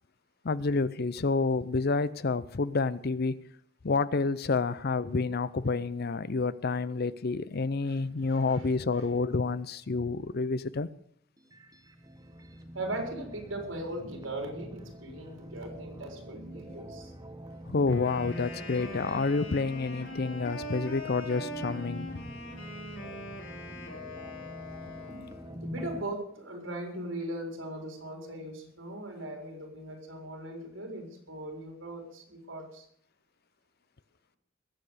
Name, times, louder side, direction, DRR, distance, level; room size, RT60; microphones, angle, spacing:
voice 1, 0.4-3.4 3.8-10.9 17.7-22.3, left 4 dB, 55° left, 17 dB, 0.6 m, -29 dB
voice 2, 7.8-8.7 8.9-9.1 12.7-17.1 24.1-24.3 25.6-32.9, right 1 dB, 85° right, 2 dB, 4.2 m, -39 dB
sound 1, 11.4-26.0, equal, 20° right, 1.1 m, -45 dB
Wind instrument woodwind instrument, 17.8-25.5, left 1 dB, 75° left, 3.7 m, -42 dB
21.0 x 7.8 x 6.6 m, 0.65 s
head